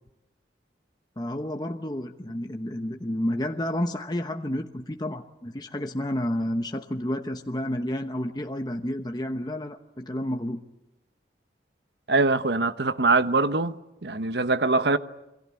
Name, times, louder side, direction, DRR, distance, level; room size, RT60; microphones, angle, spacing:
voice 1, 1.2-10.6, left 1 dB, 25° left, 1.0 m, -30 dB
voice 2, 12.1-13.7 14.0-15.0, right 3 dB, 75° right, 1.1 m, -23 dB
28.0 x 23.5 x 8.5 m
head